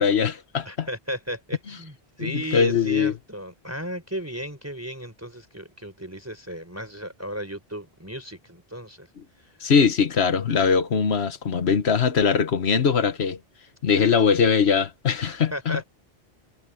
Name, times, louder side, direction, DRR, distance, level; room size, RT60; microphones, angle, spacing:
voice 1, 0.0-0.9 2.2-3.1 9.6-13.4 13.8-15.8, left 6 dB, 90° left, 1.5 m, -21 dB
voice 2, 0.6-9.1 9.4-9.5 14.0-14.1 15.2-15.8, equal, 15° right, 4.2 m, -35 dB
omnidirectional pair, 1.1 m